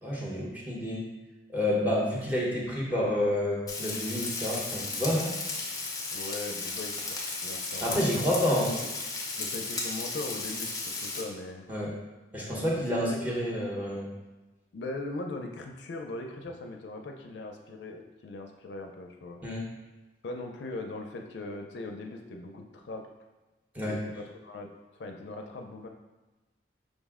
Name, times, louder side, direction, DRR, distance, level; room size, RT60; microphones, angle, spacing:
voice 1, 0.0-1.0 1.5-5.3 7.8-8.7 11.7-11.9 12.3-14.1 19.4-19.6 23.7-24.0, left 1 dB, 10° right, -4 dB, 0.8 m, -29 dB
Frying (food), 3.7-11.2, left 3 dB, 20° left, 0.6 m, -35 dB
voice 2, 6.1-8.1 8.8-8.9 9.4-11.6 12.7-13.2 14.7-19.4 20.2-23.1 23.8-24.7 24.9-25.9, left 2 dB, 70° left, 3 dB, 0.4 m, -40 dB
5.1 x 2.1 x 3.5 m, 1.1 s
head